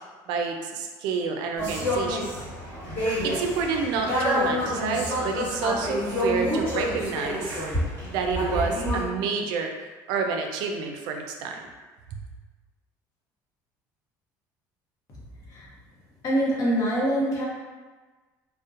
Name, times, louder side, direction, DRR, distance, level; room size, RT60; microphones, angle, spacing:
voice 1, 0.3-2.3 3.2-7.6 8.0-11.6, right 5 dB, 75° right, 3 dB, 0.3 m, -29 dB
sound 1, 1.6-9.0, equal, 35° left, 1.3 m, -28 dB
voice 2, 16.2-17.5, right 1 dB, 50° left, -5 dB, 0.8 m, -24 dB
2.5 x 2.1 x 2.4 m, 1.3 s
cardioid pair, 120°, 7 cm